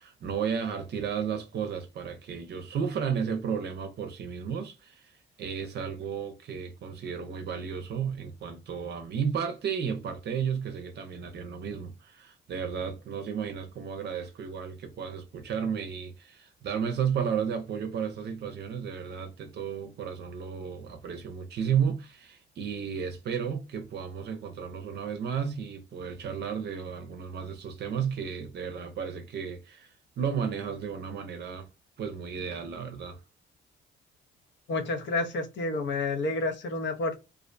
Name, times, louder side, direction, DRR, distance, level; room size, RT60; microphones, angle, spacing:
voice 1, 0.0-31.7 32.0-33.2, right 7 dB, 55° right, 0.5 m, -33 dB
voice 2, 34.7-37.2, left 2 dB, 65° left, 0.7 m, -30 dB
2.4 x 2.1 x 2.5 m
cardioid pair, 90°, 20 cm